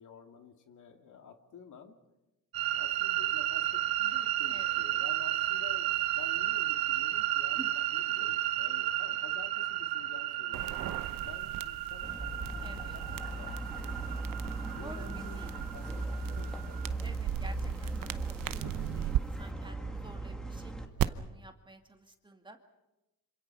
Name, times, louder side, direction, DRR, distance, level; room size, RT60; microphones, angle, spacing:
voice 1, 0.0-2.0 2.7-3.7 4.0-12.3 12.5-14.3 14.7-15.9 16.2-17.0, left 6 dB, 60° left, 5 dB, 2.4 m, -51 dB
sound 1, 2.5-16.9, right 14 dB, 85° right, 1.2 m, -33 dB
voice 2, 4.5-4.9 7.6-7.7 12.6-13.0 14.8-15.5 17.0-22.6, right 2 dB, 15° right, 5 dB, 2.2 m, -51 dB
sound 2, 10.5-19.2 21.0-21.1, right 13 dB, 70° right, 0.9 m, -38 dB
sound 3, 12.0-20.9, right 2 dB, ahead, 2.0 m, -38 dB
26.5 x 26.0 x 5.6 m, 1.0 s
cardioid pair, 125°, 35 cm